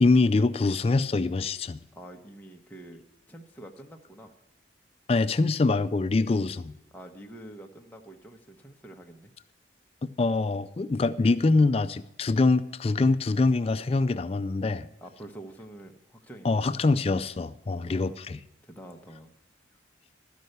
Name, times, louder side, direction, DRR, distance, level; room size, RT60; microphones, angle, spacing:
voice 1, 0.0-1.8 5.1-6.8 10.0-14.9 16.4-18.4, left 3 dB, 30° left, 0.3 m, -24 dB
voice 2, 1.9-4.3 6.9-9.3 15.0-16.8 17.7-18.2 18.6-19.3, right 1 dB, 10° left, 0.8 m, -47 dB
13.0 x 5.4 x 7.8 m
head